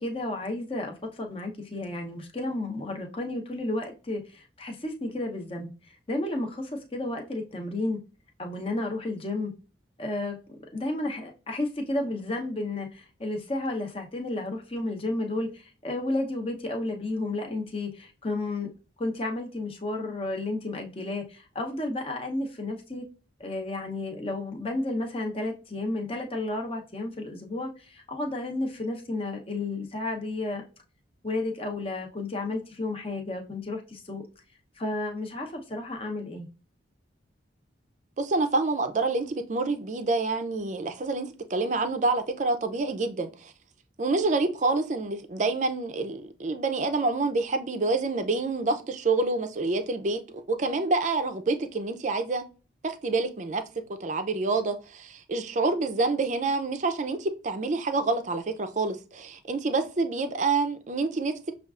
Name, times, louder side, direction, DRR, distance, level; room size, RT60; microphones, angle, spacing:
voice 1, 0.0-8.0 8.4-9.5 10.0-10.4 10.7-18.7 19.0-23.1 23.4-30.6 31.2-34.2 34.8-36.5, left 2 dB, 30° left, 0.7 m, -32 dB
voice 2, 38.2-43.5 44.0-52.4 52.8-53.6 54.0-61.5, right 3 dB, 40° right, 0.5 m, -27 dB
6.5 x 2.4 x 2.4 m
head